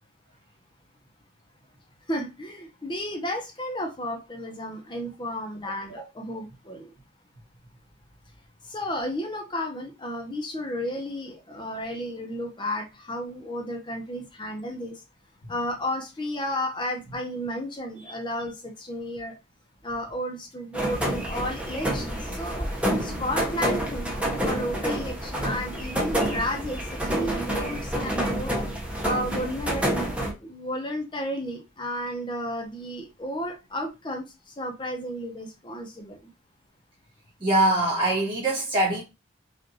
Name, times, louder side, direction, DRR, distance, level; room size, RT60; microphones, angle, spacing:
voice 1, 2.1-6.9 8.6-15.0 15.5-19.3 19.8-22.7 23.0-24.1 24.4-28.5 29.0-29.9 30.4-36.3, left 1 dB, 25° left, 0.8 m, -32 dB
sound 1, 20.7-30.3, right 1 dB, 5° right, 0.8 m, -28 dB
voice 2, 37.4-39.0, right 1 dB, 25° right, 2.0 m, -23 dB
5.3 x 2.5 x 2.8 m
head